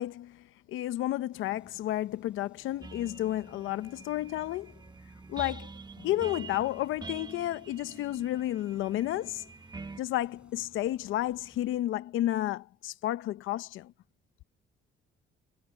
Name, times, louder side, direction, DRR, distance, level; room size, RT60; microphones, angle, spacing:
voice 1, 0.0-4.7 5.3-5.7 6.0-9.5 10.0-13.9, left 14 dB, 85° left, 0.8 m, -32 dB
sound 1, 1.3-11.8, right 1 dB, 5° right, 4.8 m, -61 dB
sound 2, 2.8-10.0, right 3 dB, 20° right, 1.1 m, -46 dB
Piano, 6.0-11.2, left 8 dB, 55° left, 6.1 m, -61 dB
cardioid pair, 90°, 20 cm